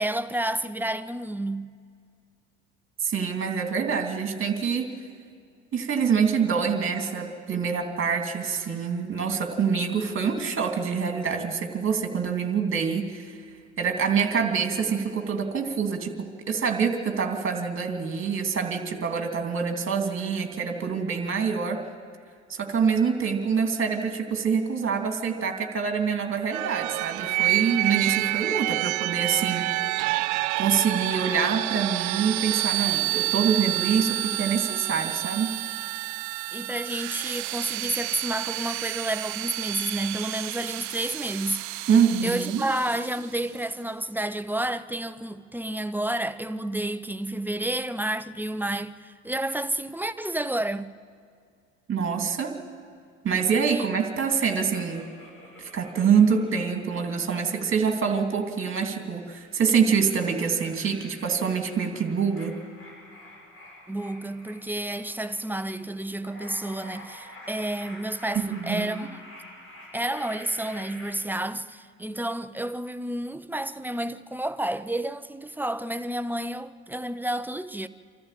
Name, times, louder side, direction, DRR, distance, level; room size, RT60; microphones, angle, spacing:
voice 1, 0.0-1.7 36.5-41.9 42.2-50.9 53.7-53.9 63.9-69.1 69.9-77.9, right 1 dB, 5° right, 0.7 m, -30 dB
voice 2, 3.0-4.9 5.7-13.4 13.8-21.8 22.5-30.0 30.5-35.6 41.9-42.7 51.9-52.6 53.2-55.1 55.6-62.6 68.3-68.9, right 6 dB, 35° right, 2.8 m, -25 dB
sound 1, 26.5-43.2, right 20 dB, 55° right, 0.5 m, -29 dB
sound 2, 54.0-58.7 59.2-71.1, left 1 dB, 40° left, 6.9 m, -48 dB
26.0 x 14.0 x 7.6 m
hypercardioid pair, 65°, 35 cm